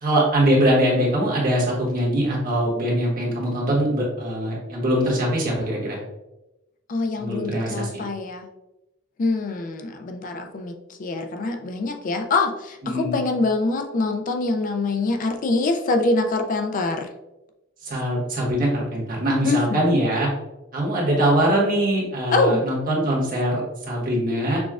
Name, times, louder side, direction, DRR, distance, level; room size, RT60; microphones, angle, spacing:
voice 1, 0.0-6.0 7.2-7.9 12.8-13.2 17.8-20.3 20.7-24.6, right 1 dB, 45° right, -3 dB, 1.3 m, -22 dB
voice 2, 6.9-8.5 9.2-10.7 11.0-17.1 19.4-19.6 22.3-22.6, left 3 dB, 40° left, 4 dB, 0.3 m, -24 dB
6.0 x 2.3 x 2.4 m, 0.96 s
head